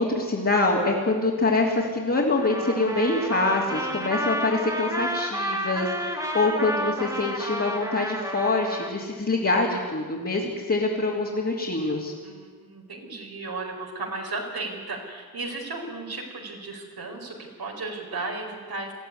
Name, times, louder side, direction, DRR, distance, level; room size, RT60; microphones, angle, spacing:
voice 1, 0.0-12.1, left 2 dB, 35° left, -4 dB, 3.3 m, -25 dB
Trumpet, 2.4-8.9, equal, 10° right, 2.3 m, -31 dB
voice 2, 12.2-18.9, right 3 dB, 70° right, 1 dB, 4.6 m, -35 dB
21.0 x 15.0 x 9.6 m, 1.5 s
wide cardioid pair, 115°, 38 cm